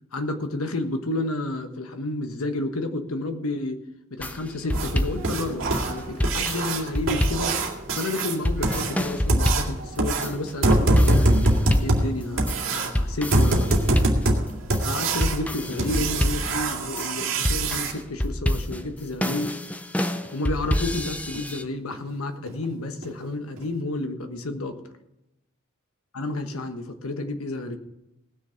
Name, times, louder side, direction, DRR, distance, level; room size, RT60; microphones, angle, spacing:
voice 1, 0.1-3.8 4.1-7.6 7.9-13.7 14.8-19.6 20.3-24.8 26.1-27.8, left 2 dB, 85° left, 7 dB, 1.3 m, -30 dB
sound 1, 4.2-21.6, left 1 dB, 5° left, 0.5 m, -28 dB
sound 2, 4.7-17.9 20.2-20.3 20.8-20.9 21.3-21.4 21.9-22.0 22.5-22.6 23.0-23.1 23.6-23.7, right 1 dB, 65° right, 2.4 m, -24 dB
18.5 x 6.6 x 5.8 m, 0.89 s
head